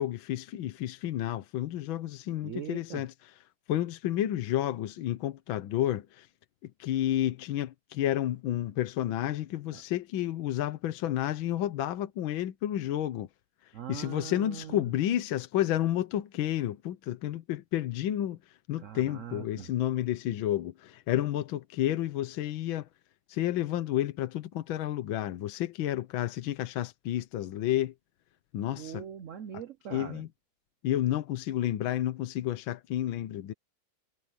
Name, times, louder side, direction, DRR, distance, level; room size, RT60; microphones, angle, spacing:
voice 1, 0.0-3.4 3.7-6.3 6.6-13.3 13.9-18.4 18.7-22.9 23.3-27.9 28.5-29.0 29.9-30.3 30.8-33.5, left 12 dB, 75° left, 1.6 m, -31 dB
voice 2, 2.4-3.0 9.7-9.8 13.7-14.9 18.8-19.7 28.8-30.2, right 9 dB, 75° right, 0.7 m, -41 dB
omnidirectional pair, 2.3 m